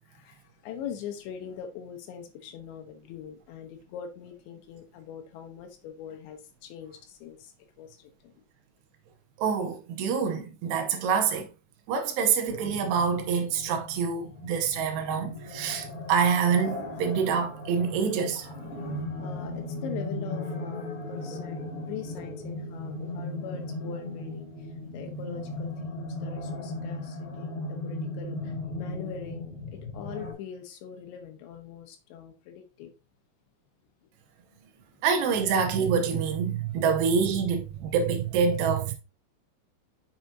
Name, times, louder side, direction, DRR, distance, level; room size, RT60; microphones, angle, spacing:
voice 1, 0.1-8.3 19.2-24.5 24.9-32.9, left 8 dB, 85° left, 3.2 m, -42 dB
voice 2, 9.4-11.5 11.9-18.5 35.0-38.9, right 6 dB, 75° right, 2.7 m, -26 dB
sound 1, 12.5-30.3, left 2 dB, 30° left, 4.0 m, -37 dB
7.9 x 5.8 x 2.7 m
omnidirectional pair, 5.2 m